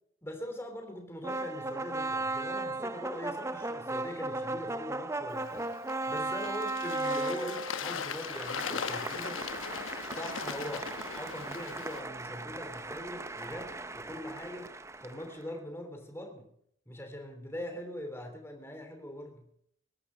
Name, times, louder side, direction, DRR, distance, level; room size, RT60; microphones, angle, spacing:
voice 1, 0.2-5.7 6.1-9.5 10.1-16.5 16.9-19.4, equal, 10° left, 4 dB, 3.1 m, -42 dB
sound 1, 1.2-15.4, right 2 dB, 15° right, 0.6 m, -37 dB
Bird / Water, 5.3-12.0, left 6 dB, 80° left, 1.0 m, -39 dB
20.0 x 11.5 x 5.6 m, 0.68 s
head